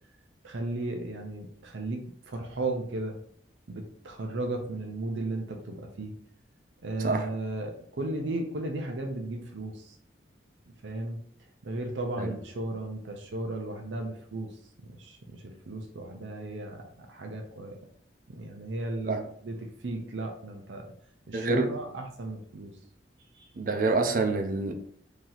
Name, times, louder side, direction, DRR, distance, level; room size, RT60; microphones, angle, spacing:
voice 1, 0.4-3.2 3.7-6.1 6.8-9.9 10.8-11.2 11.6-14.5 14.9-17.8 18.4-19.6 19.8-20.9 21.3-22.7 23.3-23.5, right 2 dB, 90° right, 2 dB, 0.6 m, -35 dB
voice 2, 21.3-21.7 23.6-24.7, right 3 dB, 50° right, 5 dB, 0.5 m, -26 dB
3.0 x 2.8 x 3.9 m, 0.63 s
head